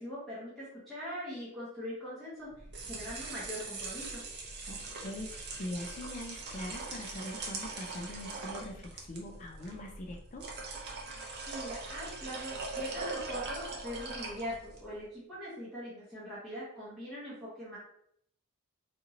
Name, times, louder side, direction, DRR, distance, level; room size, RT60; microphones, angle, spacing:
voice 1, 0.0-2.5 2.8-4.2 11.5-17.8, equal, ahead, -10 dB, 0.9 m, -42 dB
sound 1, 2.5-14.9, right 3 dB, 50° right, 0.6 m, -41 dB
voice 2, 4.6-10.5, left 1 dB, 35° left, 2 dB, 0.3 m, -42 dB
2.7 x 2.5 x 2.8 m, 0.71 s
head